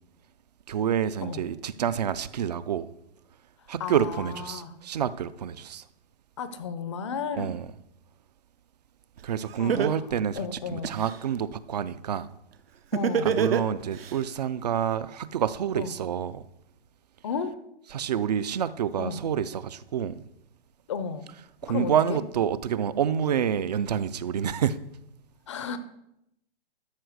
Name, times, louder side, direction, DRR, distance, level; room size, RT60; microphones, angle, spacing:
voice 1, 0.7-2.9 3.7-5.8 7.4-7.7 9.2-12.3 13.2-16.4 17.9-20.2 21.6-24.8, right 8 dB, 40° right, 16 dB, 0.5 m, -28 dB
voice 2, 3.8-4.7 6.4-7.5 9.6-11.0 12.9-13.3 15.8-15.9 17.2-17.6 19.0-19.2 20.9-21.3 21.7-22.2 25.5-25.8, left 5 dB, 30° left, 12 dB, 0.5 m, -33 dB
Laughter, 9.2-9.3 9.7-11.2 12.9-14.1, right 7 dB, 70° right, 0.9 m, -25 dB
13.0 x 5.1 x 6.3 m, 0.82 s
hypercardioid pair, 160°, 31 cm